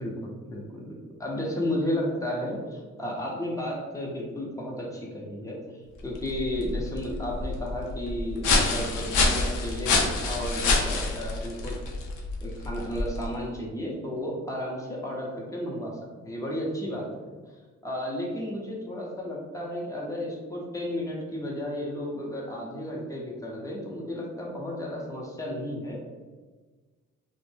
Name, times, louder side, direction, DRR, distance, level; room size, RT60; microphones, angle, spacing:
voice 1, 0.0-11.7 12.4-16.0 16.2-17.1 17.8-26.0, left 1 dB, 10° left, -3 dB, 0.7 m, -33 dB
sound 1, 6.0-13.4, left 3 dB, 80° left, 0.6 m, -27 dB
2.5 x 2.1 x 3.2 m, 1.4 s
cardioid pair, 90°, 30 cm